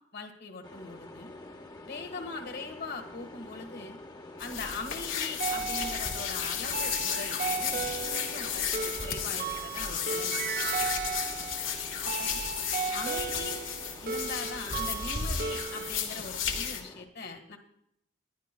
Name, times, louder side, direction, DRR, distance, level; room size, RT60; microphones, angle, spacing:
voice 1, 0.1-1.3 1.8-4.0 4.4-10.5 12.0-12.4 12.9-13.6 14.0-17.6, left 3 dB, 60° left, 5 dB, 1.6 m, -41 dB
sound 1, 0.6-17.0, left 2 dB, 20° left, 1.0 m, -48 dB
sound 2, 4.4-16.8, left 7 dB, 90° left, 1.9 m, -33 dB
sound 3, 5.4-16.1, right 6 dB, 45° right, 0.5 m, -36 dB
21.0 x 11.5 x 2.3 m, 0.73 s
head